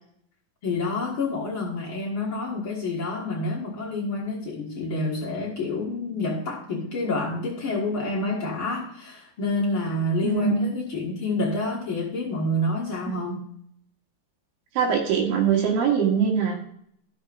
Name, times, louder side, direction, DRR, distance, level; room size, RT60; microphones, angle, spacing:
voice 1, 0.6-13.4, left 2 dB, 45° left, -5 dB, 1.9 m, -28 dB
voice 2, 10.2-10.7 13.1-13.2 14.8-16.6, right 7 dB, 90° right, 1 dB, 3.3 m, -22 dB
13.5 x 6.5 x 2.5 m, 0.70 s
omnidirectional pair, 4.0 m